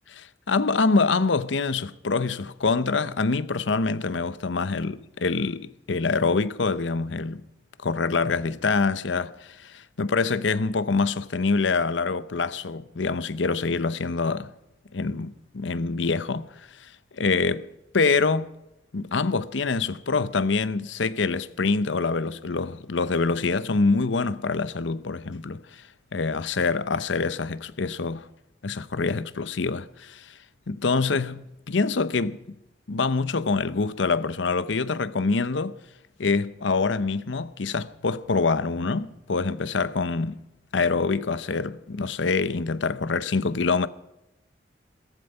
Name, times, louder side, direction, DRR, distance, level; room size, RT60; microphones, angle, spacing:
voice 1, 0.1-7.4 7.8-14.5 14.9-16.5 16.8-17.6 17.9-18.5 18.9-25.8 26.1-28.2 28.6-30.3 30.7-32.6 32.9-35.7 36.2-40.4 40.7-43.9, left 4 dB, 85° left, 0.7 m, -25 dB
16.0 x 15.0 x 5.5 m
head